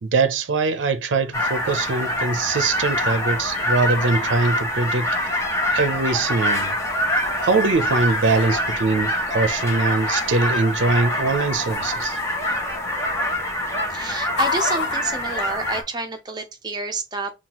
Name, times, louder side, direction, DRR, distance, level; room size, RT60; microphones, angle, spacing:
voice 1, 0.0-5.1 5.7-6.8 7.4-12.2, right 3 dB, 75° right, 0.5 m, -22 dB
sound 1, 1.3-15.8, left 1 dB, 15° left, 0.8 m, -25 dB
sound 2, 1.4-16.2, left 5 dB, 60° left, 0.5 m, -37 dB
voice 2, 13.9-17.3, right 3 dB, 20° right, 0.6 m, -29 dB
5.7 x 2.4 x 2.9 m
head